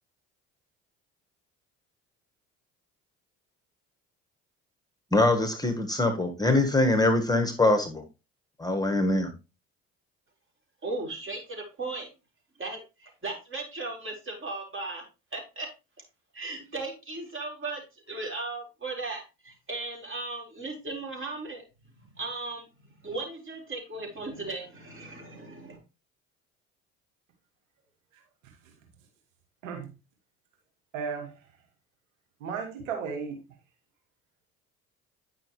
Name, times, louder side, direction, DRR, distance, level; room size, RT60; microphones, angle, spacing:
voice 1, 5.1-8.0 8.6-9.3, left 2 dB, 10° left, 5 dB, 1.6 m, -23 dB
voice 2, 10.8-12.1 12.6-15.0 15.3-15.7 16.3-17.8 18.1-21.6 22.1-22.6 23.0-25.8, right 3 dB, 30° right, 0 dB, 4.6 m, -36 dB
voice 3, 30.9-31.3 32.4-33.4, right 6 dB, 90° right, 3 dB, 1.8 m, -34 dB
9.6 x 6.1 x 3.2 m, 0.28 s
hypercardioid pair, 60°, 38 cm